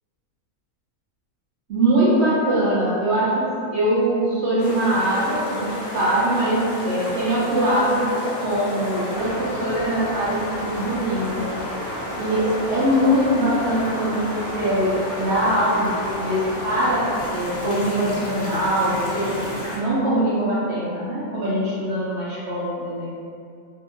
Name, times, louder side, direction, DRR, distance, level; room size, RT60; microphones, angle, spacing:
voice 1, 1.7-8.1 8.4-11.5 12.2-19.4 19.7-23.1, right 1 dB, 65° right, -8 dB, 0.7 m, -22 dB
sound 1, 4.6-19.8, equal, 60° left, 0.5 m, -31 dB
2.7 x 2.6 x 2.4 m, 2.5 s
omnidirectional pair, 1.6 m